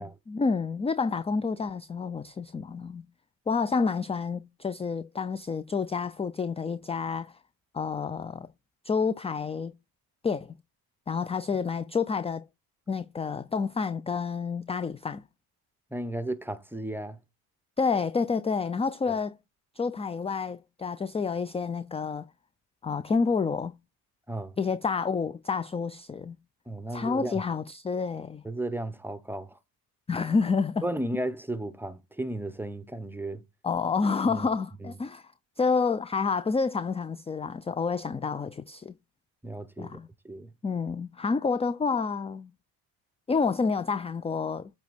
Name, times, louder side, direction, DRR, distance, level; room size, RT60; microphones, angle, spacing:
voice 1, 0.0-3.1 3.5-7.3 7.7-8.5 8.8-9.7 10.2-10.5 11.1-12.4 12.9-15.2 17.8-19.4 19.8-22.3 22.8-23.7 24.6-26.4 26.9-28.4 30.1-30.8 33.6-35.3 35.6-38.9 39.8-40.1 40.6-42.5 43.3-44.7, left 5 dB, 15° left, 0.4 m, -29 dB
voice 2, 15.9-17.2 19.1-19.2 24.3-24.5 26.7-27.4 28.4-29.6 30.8-33.4 34.3-34.5 34.8-34.9 39.4-40.0 40.2-40.5, right 1 dB, 5° right, 0.8 m, -34 dB
8.1 x 3.5 x 4.1 m
cardioid pair, 85°, 39 cm